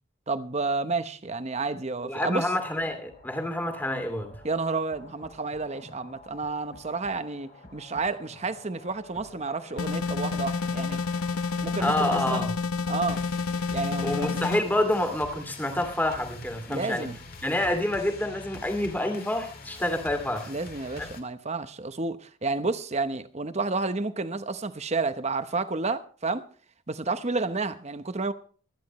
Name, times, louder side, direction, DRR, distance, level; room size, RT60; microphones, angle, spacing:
voice 1, 0.3-2.5 4.4-11.0 11.6-12.5 12.9-13.2 13.7-14.4 16.7-17.2 20.5-26.5 26.9-28.3, right 3 dB, 30° right, 0.9 m, -30 dB
voice 2, 2.0-4.3 11.8-12.5 14.0-17.1 17.4-20.5 21.0-21.1, left 1 dB, 10° left, 2.4 m, -28 dB
sound 1, 2.7-21.2, left 2 dB, 45° left, 2.4 m, -47 dB
sound 2, 9.8-14.6, left 5 dB, 90° left, 0.9 m, -29 dB
24.5 x 10.5 x 3.1 m
head